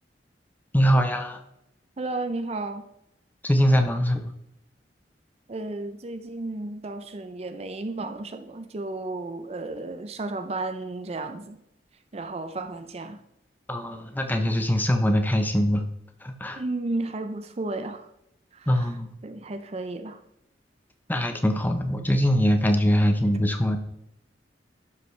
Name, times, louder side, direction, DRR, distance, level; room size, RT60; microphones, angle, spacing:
voice 1, 0.7-1.4 3.4-4.3 13.7-15.8 16.2-16.6 18.7-19.2 21.1-23.8, equal, 10° left, 0.7 m, -22 dB
voice 2, 2.0-2.9 5.5-11.6 12.1-13.2 16.6-18.1 18.5-18.9 19.2-20.2, right 2 dB, 35° right, 0.5 m, -33 dB
11.0 x 5.4 x 3.2 m
head